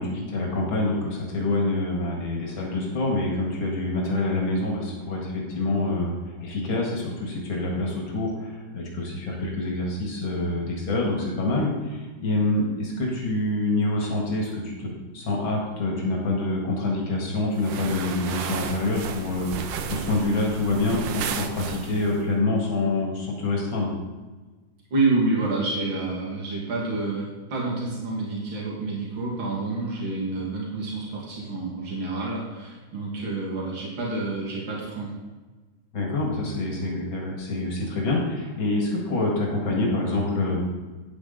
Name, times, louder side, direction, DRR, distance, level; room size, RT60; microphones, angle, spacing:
voice 1, 0.0-6.1 6.4-14.9 15.1-23.9 35.9-40.6, left 2 dB, 80° left, -1 dB, 2.6 m, -26 dB
sound 1, 17.6-22.2, right 7 dB, 70° right, 1.4 m, -33 dB
voice 2, 24.9-35.1, right 3 dB, 90° right, -4 dB, 2.7 m, -28 dB
10.0 x 8.3 x 4.0 m, 1.3 s
omnidirectional pair, 2.1 m